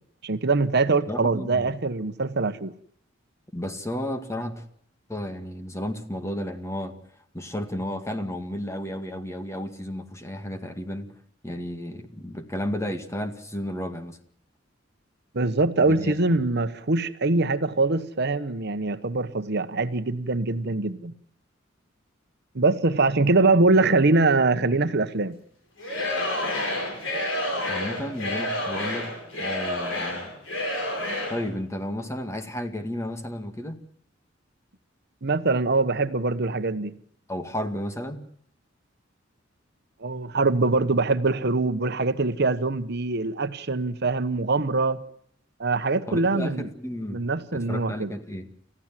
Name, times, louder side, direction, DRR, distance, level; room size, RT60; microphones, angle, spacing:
voice 1, 0.2-2.7 15.3-21.1 22.5-25.4 35.2-36.9 40.0-45.0 45.6-46.7 47.1-48.2, right 3 dB, 60° right, 11 dB, 1.1 m, -23 dB
voice 2, 1.1-1.7 3.5-4.6 5.1-7.0 7.3-11.1 11.4-14.2 15.8-16.1 27.7-29.1 29.4-30.3 31.3-33.8 37.3-38.2 46.1-48.5, left 1 dB, 15° left, 7 dB, 2.0 m, -33 dB
Singing / Crowd, 25.8-31.5, left 1 dB, 90° left, 7.7 m, -29 dB
30.0 x 15.0 x 7.6 m, 0.67 s
head